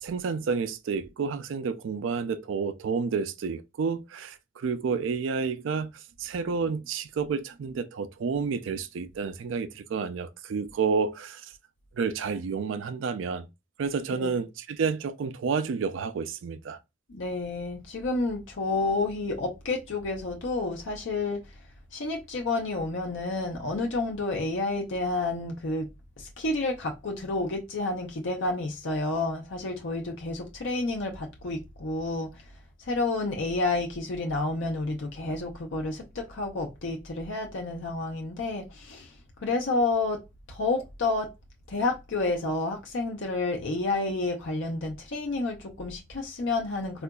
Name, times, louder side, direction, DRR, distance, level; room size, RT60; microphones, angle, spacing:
voice 1, 0.0-11.5 12.0-13.5 13.8-16.8, right 5 dB, 85° right, 0.4 m, -30 dB
voice 2, 17.1-21.4 21.9-25.9 26.2-32.4 32.8-39.1 39.4-40.2 40.5-41.3 41.7-47.0, left 2 dB, 75° left, 0.6 m, -30 dB
3.8 x 2.4 x 2.2 m
head